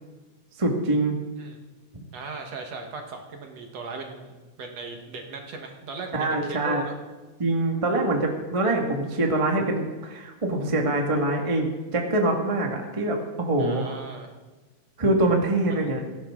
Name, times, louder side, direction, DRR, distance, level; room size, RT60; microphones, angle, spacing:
voice 1, 0.6-1.2 6.1-6.8 7.4-13.9 15.0-16.0, right 2 dB, 15° right, 1 dB, 1.2 m, -24 dB
voice 2, 2.1-6.9 13.6-14.3 15.7-15.9, right 3 dB, 60° right, 3 dB, 2.5 m, -38 dB
18.0 x 16.5 x 3.8 m, 1.2 s
omnidirectional pair, 3.7 m